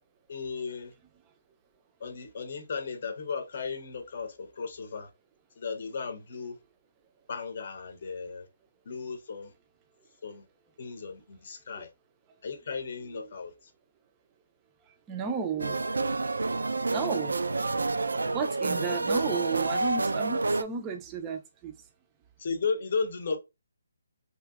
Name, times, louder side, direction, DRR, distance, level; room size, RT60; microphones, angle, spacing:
voice 1, 0.3-0.9 2.0-5.1 5.6-6.6 7.3-8.5 8.9-9.5 10.2-10.4 10.8-11.9 12.4-13.5 22.4-23.4, left 5 dB, 45° left, 0.7 m, -35 dB
voice 2, 15.1-15.8 16.2-16.3 16.9-17.4 18.3-21.8, right 6 dB, 15° right, 0.4 m, -33 dB
sound 1, 15.6-20.6, right 3 dB, 85° right, 0.3 m, -28 dB
3.0 x 2.7 x 2.3 m
hypercardioid pair, 160°, 0 cm